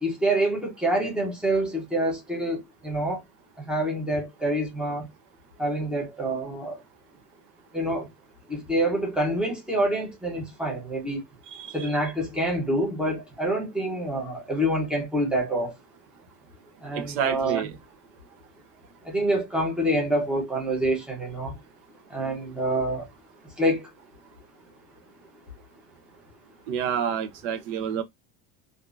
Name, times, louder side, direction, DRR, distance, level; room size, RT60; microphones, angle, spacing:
voice 1, 0.0-3.2 3.6-5.1 5.6-6.8 7.7-8.1 8.5-11.2 11.7-15.7 16.8-17.6 19.0-21.5 22.1-23.1 23.6-23.9, right 1 dB, ahead, 0.7 m, -26 dB
voice 2, 16.9-17.7 26.7-28.0, right 8 dB, 60° right, 0.7 m, -28 dB
3.5 x 2.6 x 2.4 m
cardioid pair, 175°, 42 cm